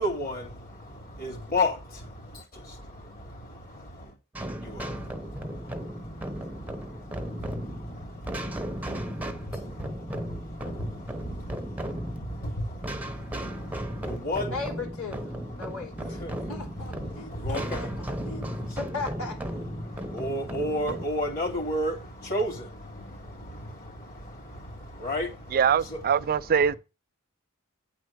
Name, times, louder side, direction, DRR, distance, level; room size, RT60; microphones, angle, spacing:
voice 1, 0.0-14.6 15.3-17.9 19.7-26.0, left 1 dB, 40° left, 3.0 m, -34 dB
sound 1, 4.3-21.1, equal, 5° right, 0.8 m, -36 dB
voice 2, 14.5-16.2 16.5-17.9 18.2-18.5 18.9-19.4, left 3 dB, 90° left, 3.9 m, -37 dB
voice 3, 25.5-26.7, right 7 dB, 40° right, 0.4 m, -23 dB
8.8 x 4.4 x 6.1 m
head